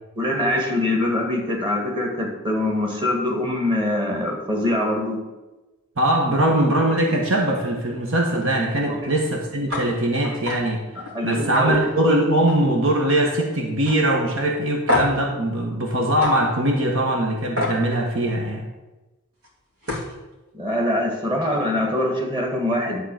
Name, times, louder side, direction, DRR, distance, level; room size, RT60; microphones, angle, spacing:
voice 1, 0.2-5.2 8.9-9.1 11.0-11.8 20.5-23.0, left 1 dB, 20° right, 1 dB, 1.7 m, -23 dB
voice 2, 6.0-10.8 11.2-18.6, right 1 dB, 65° right, 1 dB, 1.3 m, -21 dB
sound 1, 9.7-9.9 10.2-10.6 11.0-11.1 11.5-12.7 13.0-13.4 13.8-14.0 14.9-15.2 16.2-16.3 17.6-17.8 19.4-19.5 19.8-20.1, left 2 dB, 90° right, 2.6 m, -26 dB
11.0 x 3.9 x 7.6 m, 1.1 s
head